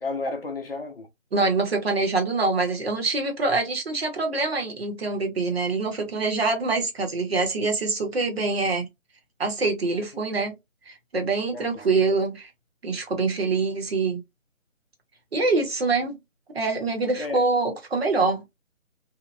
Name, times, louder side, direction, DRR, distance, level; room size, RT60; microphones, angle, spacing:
voice 1, 0.0-1.1 11.5-12.2 17.2-17.5, left 3 dB, 45° left, 0.6 m, -33 dB
voice 2, 1.3-8.9 9.4-10.5 10.9-12.5 12.8-14.2 15.3-16.2 16.5-18.5, right 3 dB, 50° right, 1.1 m, -25 dB
2.8 x 2.2 x 2.2 m
figure-of-eight pair, 160°, 40 cm